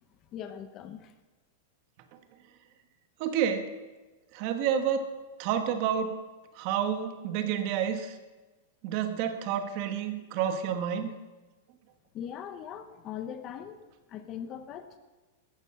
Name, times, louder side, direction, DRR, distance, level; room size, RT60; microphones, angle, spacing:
voice 1, 0.3-1.1 12.1-13.8 14.1-14.9, left 9 dB, 25° left, 10 dB, 0.8 m, -40 dB
voice 2, 3.2-3.7 4.3-5.1 5.4-6.2 6.5-8.2 8.8-11.2, right 8 dB, 40° right, 8 dB, 1.3 m, -29 dB
14.0 x 10.5 x 7.4 m, 1.2 s
supercardioid pair, 170°, 0 cm